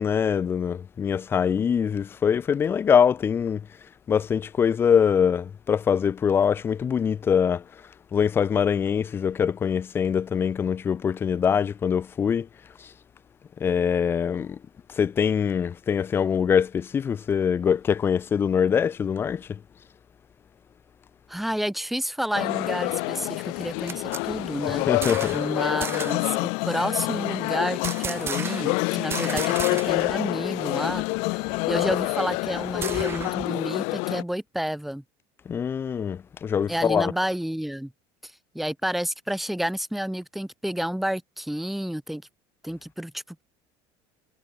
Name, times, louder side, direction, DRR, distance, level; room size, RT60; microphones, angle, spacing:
voice 1, 0.0-3.6 4.1-7.6 8.1-12.5 13.6-14.6 14.9-19.6 24.9-25.4 35.5-37.1, left 7 dB, 20° left, 0.7 m, -23 dB
voice 2, 21.3-24.9 25.3-31.0 31.3-31.4 31.7-35.0 36.7-37.9 38.2-42.2 42.6-43.4, equal, ahead, 1.7 m, -30 dB
sound 1, 22.3-34.2, left 32 dB, 70° left, 3.4 m, -27 dB
sound 2, 23.6-25.5 25.8-26.3 27.8-28.8 29.1-30.2 30.5-30.6 30.9-33.5, right 7 dB, 20° right, 2.6 m, -35 dB
cardioid pair, 165°, 11 cm